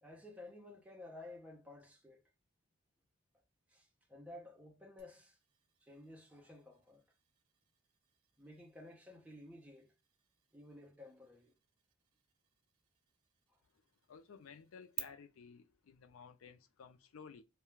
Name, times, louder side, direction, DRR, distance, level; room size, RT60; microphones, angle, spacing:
voice 1, 0.0-2.2 3.7-5.4 5.8-7.0 8.4-9.9 10.5-11.5 13.5-13.6, left 2 dB, 5° right, 0.5 m, -54 dB
sound 1, 5.0-15.0, right 13 dB, 85° right, 0.5 m, -56 dB
voice 2, 14.1-17.4, left 6 dB, 70° left, 0.4 m, -55 dB
2.2 x 2.2 x 3.1 m
head